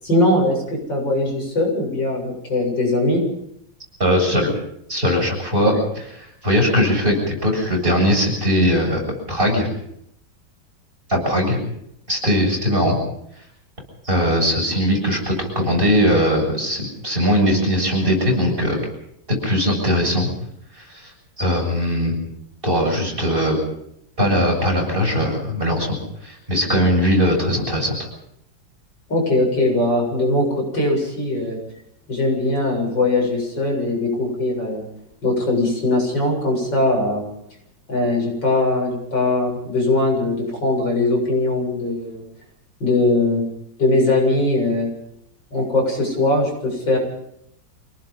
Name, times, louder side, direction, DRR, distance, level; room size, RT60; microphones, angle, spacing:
voice 1, 0.0-3.2 5.6-5.7 29.1-31.6 32.1-34.8 35.2-37.2 37.9-42.2 42.8-43.4 43.8-44.9 45.5-47.0, left 2 dB, 65° left, 0 dB, 8.2 m, -20 dB
voice 2, 4.0-4.5 4.9-5.7 6.2-9.7 11.1-11.6 12.1-13.0 14.0-18.8 19.4-20.3 20.7-21.1 21.4-22.2 22.6-23.6 24.2-26.0 26.2-28.1, equal, 25° right, 0 dB, 7.6 m, -20 dB
27.0 x 18.5 x 5.5 m, 0.74 s
omnidirectional pair, 2.1 m